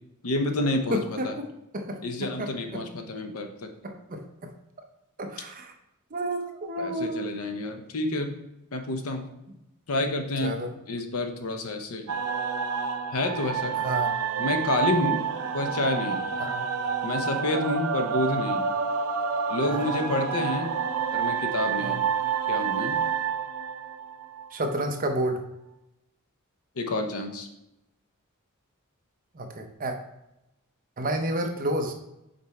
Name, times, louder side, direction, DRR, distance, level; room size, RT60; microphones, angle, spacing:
voice 1, 0.2-1.4 2.0-3.7 6.8-8.4 8.7-9.3 9.9-10.6 10.9-12.1 13.1-13.7 14.4-15.2 15.5-16.2 17.0-18.7 19.5-20.7 21.1-22.0 22.5-23.0 26.8-27.5, left 2 dB, 70° left, 5 dB, 0.7 m, -29 dB
voice 2, 0.9-1.3 1.7-2.5 2.7-2.8 3.8-4.5 5.2-5.7 6.1-7.3 10.4-10.7 13.8-14.1 16.4-16.6 19.7-19.9 21.8-22.0 24.5-25.4 29.3-29.9 31.0-31.9, right 1 dB, 40° right, 4 dB, 0.7 m, -30 dB
sound 1, 12.1-24.7, right 6 dB, 80° right, 0.6 m, -28 dB
5.3 x 4.5 x 4.2 m, 0.89 s
head